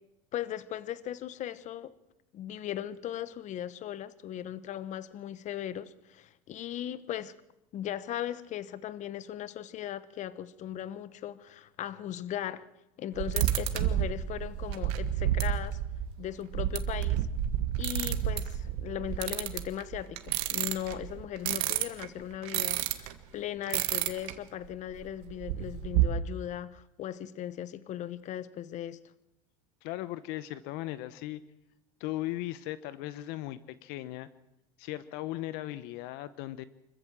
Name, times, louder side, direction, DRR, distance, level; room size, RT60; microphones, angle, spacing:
voice 1, 0.3-1.9 2.3-7.3 7.7-12.7 13.0-15.8 16.2-17.3 17.8-29.0, left 11 dB, 40° left, 1.1 m, -38 dB
sound 1, 13.1-23.1 23.7-24.3 24.6-24.7 25.0-26.1, right 12 dB, 70° right, 1.8 m, -30 dB
voice 2, 29.8-31.4 32.0-34.3 34.8-36.6, left 15 dB, 65° left, 0.9 m, -37 dB
25.5 x 14.5 x 7.6 m
supercardioid pair, 115°, 18 cm